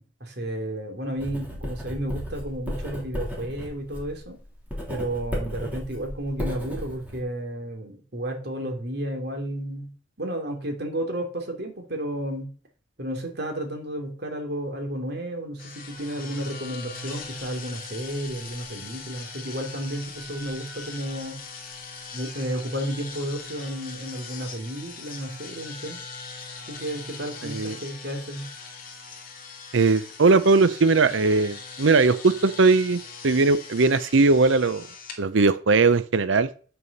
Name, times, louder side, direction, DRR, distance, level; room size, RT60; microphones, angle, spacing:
voice 1, 0.0-4.4 4.9-9.9 10.2-12.5 13.0-21.4 22.1-26.0 26.7-28.5, right 1 dB, 55° right, 4 dB, 2.9 m, -32 dB
Writing, 1.2-7.2, equal, 10° right, 3.3 m, -34 dB
sound 1, 15.6-35.2, left 4 dB, 45° left, 2.7 m, -41 dB
voice 2, 27.4-27.8 29.7-34.9 35.2-36.5, right 3 dB, 70° right, 15 dB, 0.7 m, -19 dB
8.8 x 7.0 x 6.5 m, 0.40 s
head